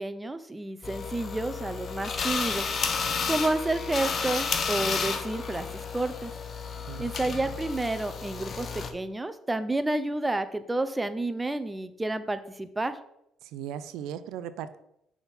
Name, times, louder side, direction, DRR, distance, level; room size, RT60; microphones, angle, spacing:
voice 1, 0.0-2.7 3.3-5.7 5.9-6.3 7.0-13.0, right 2 dB, 15° right, 11 dB, 0.5 m, -30 dB
sound 1, 0.8-8.9, left 5 dB, 45° left, 0.7 m, -32 dB
voice 2, 6.9-7.4 13.4-14.8, right 9 dB, 80° right, 13 dB, 0.4 m, -38 dB
5.9 x 3.5 x 5.5 m, 0.78 s
cardioid pair, 90°, 0 cm